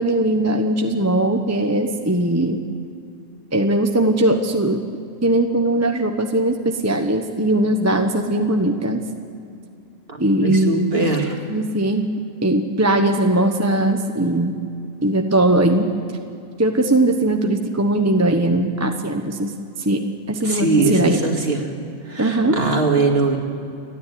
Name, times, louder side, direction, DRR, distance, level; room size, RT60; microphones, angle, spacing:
voice 1, 0.0-2.6 3.5-4.8 5.2-9.0 10.2-11.1 11.5-12.0 12.4-14.5 15.0-15.9 16.6-19.5 19.8-21.2 22.2-22.6, right 1 dB, 10° right, 4 dB, 1.0 m, -19 dB
voice 2, 10.1-11.4 20.4-21.6 22.1-23.4, right 3 dB, 40° right, 2 dB, 2.5 m, -21 dB
29.0 x 10.5 x 10.0 m, 2.5 s
omnidirectional pair, 1.5 m